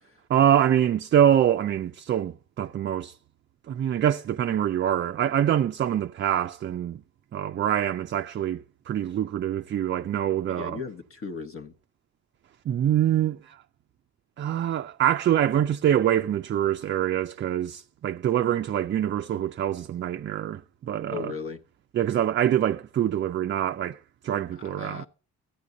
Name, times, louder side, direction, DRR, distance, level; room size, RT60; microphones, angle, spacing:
voice 1, 0.3-3.2 3.7-7.0 7.3-10.8 12.7-13.6 14.4-21.3 21.9-25.1, right 10 dB, 40° right, 0.4 m, -25 dB
voice 2, 10.5-11.7 21.1-21.6 24.5-25.1, left 5 dB, 45° left, 0.9 m, -37 dB
13.0 x 8.3 x 3.8 m
cardioid pair, 90°, 30 cm